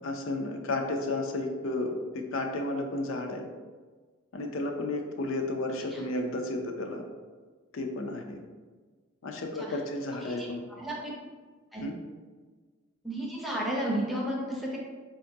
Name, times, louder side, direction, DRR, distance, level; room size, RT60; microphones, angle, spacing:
voice 1, 0.0-3.4 4.3-7.0 7.7-8.4 9.2-10.6 11.8-11.9, left 2 dB, 80° left, 3 dB, 0.4 m, -32 dB
voice 2, 10.8-11.1 11.7-11.8 13.0-14.8, right 1 dB, ahead, -4 dB, 0.5 m, -32 dB
4.5 x 2.3 x 2.7 m, 1.4 s
head